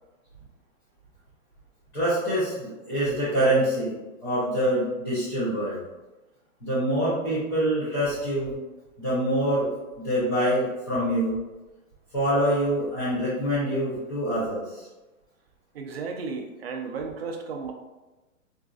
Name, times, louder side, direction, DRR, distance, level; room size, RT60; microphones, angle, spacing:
voice 1, 1.9-3.9 4.2-5.8 6.6-8.5 9.0-9.7 10.0-11.4 12.1-14.9, right 1 dB, 20° left, -12 dB, 0.5 m, -25 dB
voice 2, 15.7-17.7, right 4 dB, 45° right, 3 dB, 0.5 m, -34 dB
3.9 x 2.5 x 2.3 m, 1.1 s
hypercardioid pair, 155°, 43 cm